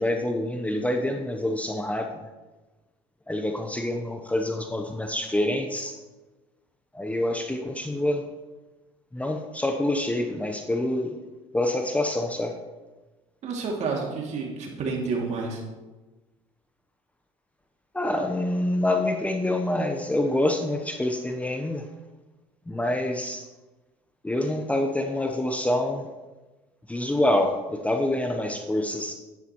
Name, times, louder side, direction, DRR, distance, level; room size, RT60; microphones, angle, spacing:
voice 1, 0.0-2.1 3.3-6.0 6.9-8.3 9.1-11.1 11.5-12.5 17.9-21.9 22.7-23.5 24.2-26.1 26.9-29.1, left 1 dB, 10° left, 4 dB, 0.8 m, -26 dB
voice 2, 13.4-15.6, right 4 dB, 55° right, 0 dB, 2.5 m, -29 dB
10.5 x 9.5 x 3.1 m, 1.2 s
hypercardioid pair, 75°, 14 cm